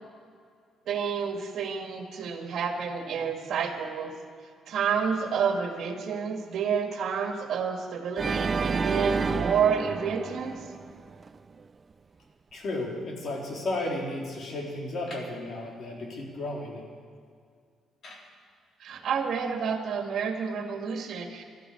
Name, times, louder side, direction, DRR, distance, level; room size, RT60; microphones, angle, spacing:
voice 1, 0.9-4.1 4.7-10.6 18.8-21.4, right 6 dB, 70° right, 4 dB, 2.0 m, -29 dB
Organ, 8.2-11.3, right 5 dB, 35° right, 0.4 m, -30 dB
voice 2, 12.5-16.8 18.0-18.2, left 2 dB, 60° left, -1 dB, 3.9 m, -33 dB
12.5 x 12.5 x 8.5 m, 2.1 s
cardioid pair, 90°, 0 cm